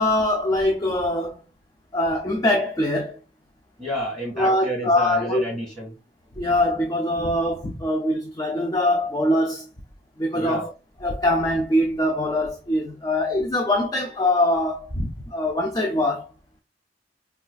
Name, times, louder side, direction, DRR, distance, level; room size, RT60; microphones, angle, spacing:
voice 1, 0.0-1.4 1.9-3.2 4.4-5.4 6.4-9.7 10.2-10.7 11.0-16.3, left 1 dB, 20° left, 0.4 m, -23 dB
voice 2, 3.8-5.9 10.3-10.6, right 1 dB, 5° left, 1.8 m, -30 dB
4.2 x 2.3 x 2.3 m
head